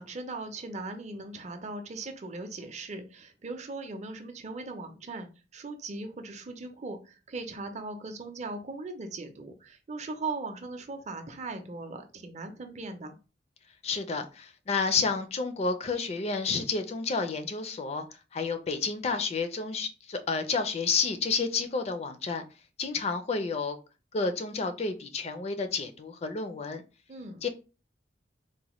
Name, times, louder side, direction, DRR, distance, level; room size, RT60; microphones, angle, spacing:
voice 1, 0.0-13.2 27.1-27.4, right 3 dB, 40° right, 0.5 m, -39 dB
voice 2, 13.8-18.1 18.3-22.4 22.8-23.8 24.1-26.8 27.4-27.5, left 4 dB, 35° left, 0.4 m, -30 dB
3.9 x 2.1 x 2.9 m
head